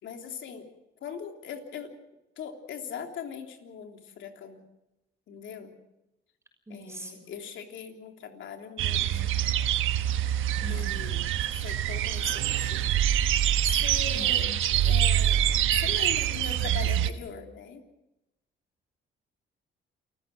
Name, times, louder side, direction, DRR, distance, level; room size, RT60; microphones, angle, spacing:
voice 1, 0.0-0.7 1.0-1.9 2.4-4.6 5.3-5.7 6.7-9.4 10.7-15.4 15.7-17.8, left 7 dB, 75° left, 4 dB, 3.4 m, -41 dB
voice 2, 6.7-7.2 10.6-10.9 14.1-14.9, equal, 15° right, 4 dB, 6.4 m, -43 dB
sound 1, 8.8-17.1, right 11 dB, 85° right, 1.2 m, -25 dB
29.0 x 14.5 x 7.7 m, 0.90 s
cardioid pair, 90°, 20 cm